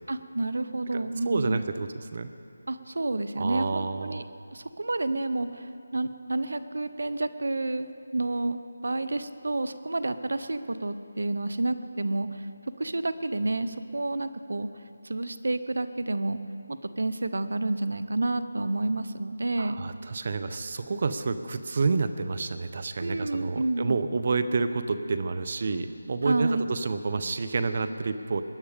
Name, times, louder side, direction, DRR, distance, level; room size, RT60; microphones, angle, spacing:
voice 1, 0.1-1.6 2.7-4.2 4.5-12.5 12.8-14.7 15.0-16.4 16.7-19.8 23.0-24.0 26.2-26.7, right 2 dB, 70° right, 12 dB, 0.8 m, -29 dB
voice 2, 0.9-2.3 3.4-4.2 19.6-28.4, right 4 dB, 45° right, 10 dB, 0.8 m, -29 dB
21.0 x 9.8 x 5.1 m, 2.5 s
figure-of-eight pair, 165°, 0 cm